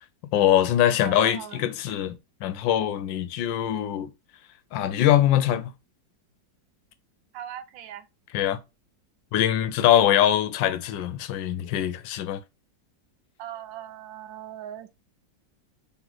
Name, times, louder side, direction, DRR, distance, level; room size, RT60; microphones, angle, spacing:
voice 1, 0.3-2.2 2.4-4.1 4.7-5.7 8.3-8.6 9.3-12.4, left 11 dB, 85° left, 1.3 m, -22 dB
voice 2, 1.0-1.6 7.3-8.0 13.4-14.9, right 10 dB, 80° right, 1.3 m, -39 dB
3.7 x 3.0 x 3.9 m
omnidirectional pair, 2.0 m